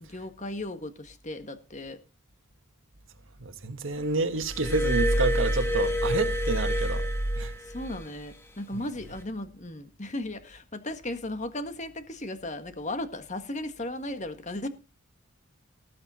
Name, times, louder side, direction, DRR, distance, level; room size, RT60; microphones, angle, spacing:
voice 1, 0.0-2.0 7.6-14.7, left 1 dB, 35° left, 1.7 m, -36 dB
voice 2, 3.6-7.0 7.4-7.5, right 2 dB, 65° right, 1.6 m, -28 dB
Glass, 4.4-8.0 9.0-9.2, equal, 10° left, 2.1 m, -27 dB
19.0 x 7.8 x 4.3 m
head